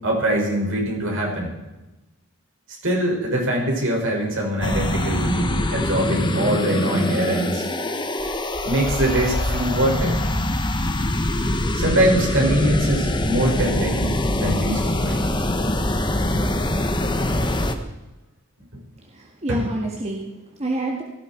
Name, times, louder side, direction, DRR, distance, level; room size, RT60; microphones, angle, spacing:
voice 1, 0.0-1.5 2.8-7.7 8.6-10.1 11.7-15.2 19.5-19.7, right 1 dB, 60° right, -1 dB, 5.9 m, -23 dB
sound 1, 4.6-17.8, left 1 dB, 20° left, 1.3 m, -23 dB
voice 2, 19.0-21.0, right 2 dB, 30° right, 0 dB, 1.8 m, -28 dB
18.0 x 15.5 x 4.6 m, 1.1 s
head